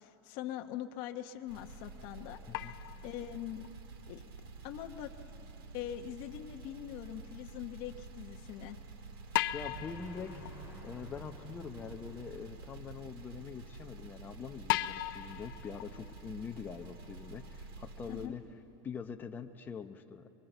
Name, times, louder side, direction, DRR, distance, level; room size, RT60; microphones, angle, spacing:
voice 1, 0.0-3.7 4.1-4.2 4.6-5.3 5.7-8.8 18.1-18.3, left 11 dB, 45° left, 4 dB, 0.9 m, -43 dB
sound 1, 1.5-18.3, right 3 dB, 85° right, 2.1 m, -49 dB
sound 2, 2.5-3.7 6.6-6.7 9.3-12.2 12.7-12.8 13.8-13.9 14.7-17.5 18.0-18.1 19.1-19.2, left 16 dB, 65° left, 0.6 m, -39 dB
voice 2, 9.5-10.3 10.8-18.4 18.8-20.3, left 6 dB, 15° left, 5 dB, 0.7 m, -44 dB
sound 3, 9.5-14.1, right 2 dB, 20° right, 2.2 m, -54 dB
24.0 x 23.5 x 8.0 m, 2.8 s
supercardioid pair, 165°, 12 cm